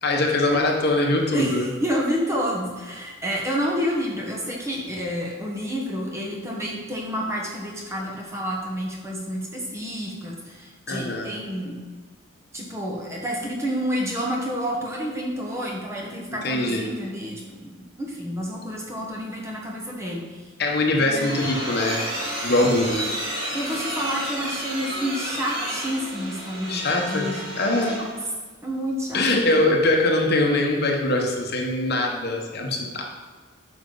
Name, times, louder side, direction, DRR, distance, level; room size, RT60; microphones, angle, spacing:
voice 1, 0.0-1.7 10.9-11.3 16.4-16.9 20.6-22.0 22.4-23.1 26.7-27.3 27.6-28.0 29.1-33.0, left 2 dB, 50° left, 0 dB, 1.1 m, -22 dB
voice 2, 1.3-11.8 12.5-17.7 18.0-20.4 20.9-21.3 23.5-27.4 27.7-27.8 28.6-29.3, equal, 15° right, -2 dB, 1.2 m, -29 dB
sound 1, 20.7-28.2, right 1 dB, 45° right, 1.9 m, -31 dB
9.2 x 5.9 x 3.9 m, 1.4 s
head